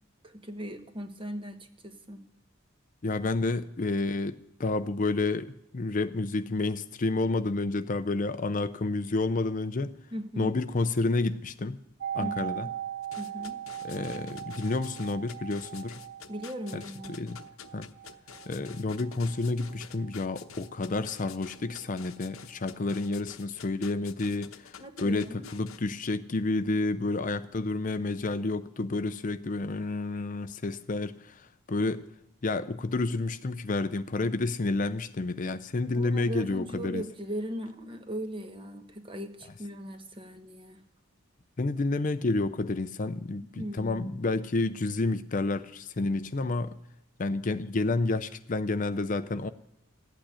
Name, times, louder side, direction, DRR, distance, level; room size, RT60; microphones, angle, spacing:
voice 1, 0.2-2.2 10.1-10.6 12.2-12.7 13.2-13.6 16.3-17.1 24.8-25.5 35.9-40.8 43.3-44.3, equal, 25° right, 1.2 m, -39 dB
voice 2, 3.0-9.9 10.4-11.8 12.1-12.7 13.8-15.9 16.7-16.8 17.2-17.4 17.7-17.9 18.5-32.1 32.4-37.0 41.6-46.7 47.2-49.5, left 3 dB, 40° left, 0.5 m, -30 dB
sound 1, 12.0-21.7 22.0-22.1, right 11 dB, 60° right, 0.6 m, -40 dB
sound 2, 13.0-25.8, left 7 dB, 75° left, 0.9 m, -48 dB
15.0 x 8.9 x 10.0 m
head